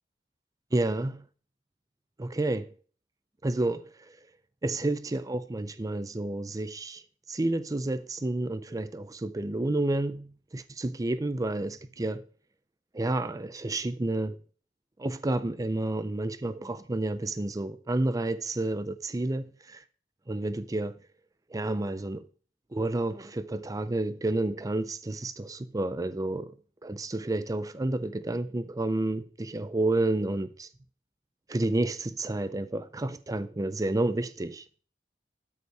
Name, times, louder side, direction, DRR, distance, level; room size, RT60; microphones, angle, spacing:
voice 1, 0.7-1.2 2.2-2.7 3.4-4.2 4.6-7.0 7.3-12.2 12.9-14.4 15.0-19.8 20.3-21.0 21.5-22.3 22.7-26.5 26.8-30.7 31.5-34.6, right 2 dB, 20° right, 0.5 m, -30 dB
12.5 x 5.5 x 4.6 m
head